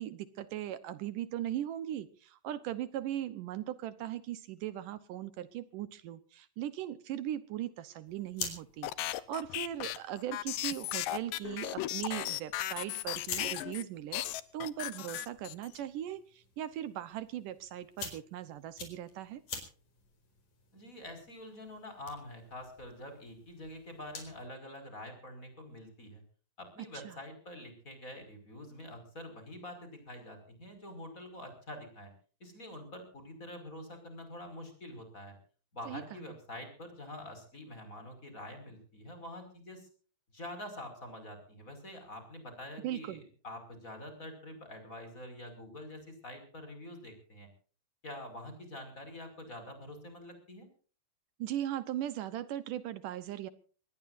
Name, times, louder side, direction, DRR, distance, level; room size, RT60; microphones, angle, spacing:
voice 1, 0.0-14.2 14.5-19.4 26.9-27.2 35.9-36.2 42.8-43.2 51.4-53.5, right 12 dB, 75° right, 14 dB, 2.5 m, -39 dB
sound 1, 8.0-24.5, left 5 dB, 65° left, 5.7 m, -49 dB
sound 2, 8.8-13.8 14.1-15.8, left 15 dB, 80° left, 2.6 m, -36 dB
voice 2, 20.7-26.2 26.6-32.1 32.4-35.3 35.7-39.9 40.3-47.5 48.0-50.7, left 1 dB, 25° left, 7 dB, 5.6 m, -46 dB
24.5 x 20.0 x 2.6 m, 0.41 s
omnidirectional pair, 3.8 m